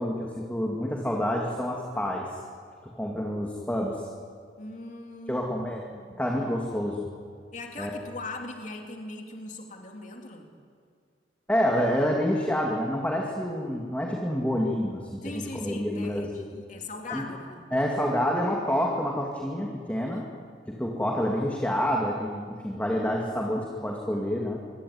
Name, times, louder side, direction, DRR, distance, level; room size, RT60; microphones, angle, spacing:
voice 1, 0.0-2.4 2.8-4.1 5.3-5.8 6.2-7.0 7.8-8.0 11.5-16.4 17.1-17.3 17.7-20.2 20.7-24.6, equal, 10° left, -1 dB, 2.4 m, -28 dB
voice 2, 4.6-6.2 7.5-10.5 15.2-17.7 20.0-20.4, left 2 dB, 40° left, 2 dB, 3.4 m, -40 dB
25.5 x 23.5 x 9.6 m, 2.2 s
head